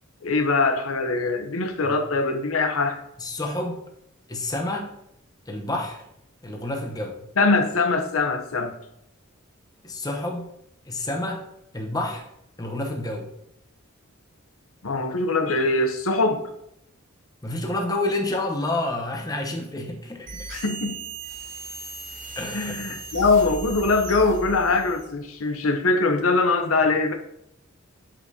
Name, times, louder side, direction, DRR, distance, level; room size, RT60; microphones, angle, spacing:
voice 1, 0.2-3.0 7.4-8.7 14.8-16.4 20.5-21.0 22.5-27.1, left 3 dB, 80° left, 6 dB, 0.8 m, -22 dB
voice 2, 3.2-3.8 4.3-4.9 5.5-6.0 6.4-7.2 9.8-10.5 10.8-11.4 11.7-12.2 12.6-13.3 17.4-20.5 22.4-22.8, left 2 dB, 20° left, 1 dB, 0.9 m, -29 dB
sound 1, 20.3-25.1, right 3 dB, 40° right, 1.5 m, -37 dB
10.0 x 5.2 x 2.8 m, 0.78 s
head